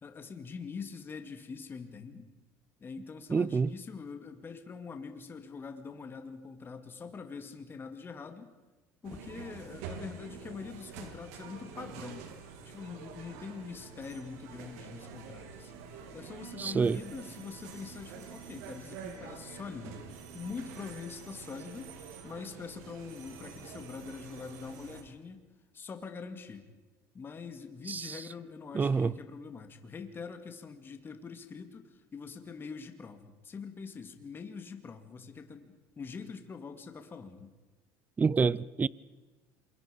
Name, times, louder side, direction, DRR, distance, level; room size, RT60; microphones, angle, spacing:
voice 1, 0.0-2.3 2.8-8.5 9.0-12.3 12.6-15.7 16.1-21.9 22.2-25.4 25.7-26.7 27.1-37.5, left 5 dB, 30° left, 2.4 m, -44 dB
voice 2, 3.3-3.7 16.6-17.0 27.9-28.2 28.7-29.1 38.2-38.9, right 5 dB, 20° right, 0.6 m, -27 dB
sound 1, 9.0-25.0, right 6 dB, 85° right, 3.6 m, -47 dB
27.5 x 22.5 x 5.3 m
supercardioid pair, 110°, 8 cm